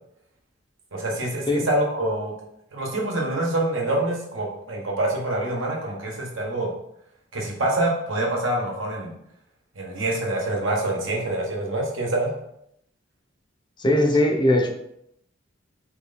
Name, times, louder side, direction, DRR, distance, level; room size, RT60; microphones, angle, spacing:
voice 1, 0.9-2.3 2.7-6.7 7.3-9.1 9.8-12.3, right 1 dB, 85° right, -1 dB, 1.1 m, -26 dB
voice 2, 13.8-14.7, left 1 dB, 25° left, 2 dB, 0.5 m, -19 dB
3.2 x 3.0 x 3.9 m, 0.76 s
head